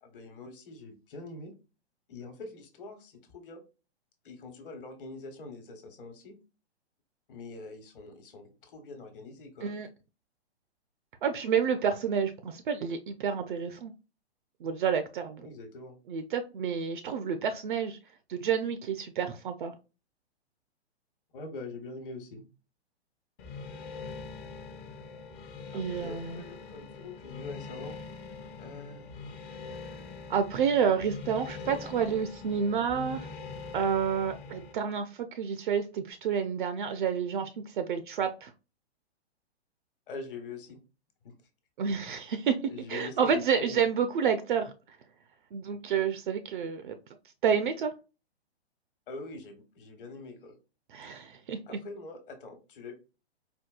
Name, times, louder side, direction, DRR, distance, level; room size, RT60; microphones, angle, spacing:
voice 1, 0.0-1.5 2.1-3.6 4.2-6.4 7.3-9.7 15.4-16.0 21.3-22.4 25.7-28.0 28.6-29.4 31.6-31.8 40.1-40.8 41.2-41.3 42.7-43.3 43.6-43.8 49.1-50.5 51.7-52.9, left 3 dB, 50° left, 1.1 m, -44 dB
voice 2, 11.2-13.9 14.6-15.5 16.1-18.0 18.3-19.7 25.7-26.4 30.3-33.3 33.7-38.5 41.8-42.6 42.9-45.0 45.5-47.0 47.4-47.9 50.9-51.8, right 7 dB, 50° right, 0.4 m, -29 dB
sound 1, 23.4-34.7, left 4 dB, 25° left, 0.5 m, -43 dB
4.4 x 2.2 x 2.3 m
hypercardioid pair, 130°, 33 cm